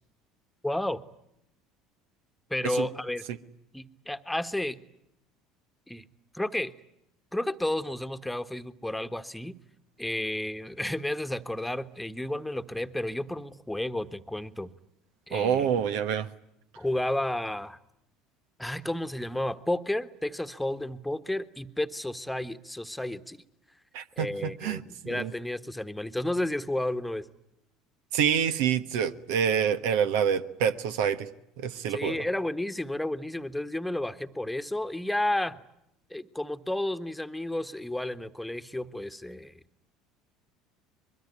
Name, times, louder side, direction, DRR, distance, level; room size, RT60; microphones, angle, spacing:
voice 1, 0.6-1.0 2.5-3.2 3.7-4.8 5.9-6.0 6.3-6.7 7.3-9.5 10.0-14.7 15.3-15.7 16.8-17.8 18.6-23.4 24.2-27.3 31.9-35.6 36.1-39.5, left 1 dB, 5° left, 10 dB, 1.5 m, -32 dB
voice 2, 15.3-16.3 23.9-25.3 28.1-31.3 31.6-32.2, right 8 dB, 70° right, 11 dB, 1.3 m, -27 dB
24.5 x 22.5 x 9.8 m, 0.78 s
hypercardioid pair, 70°, 0 cm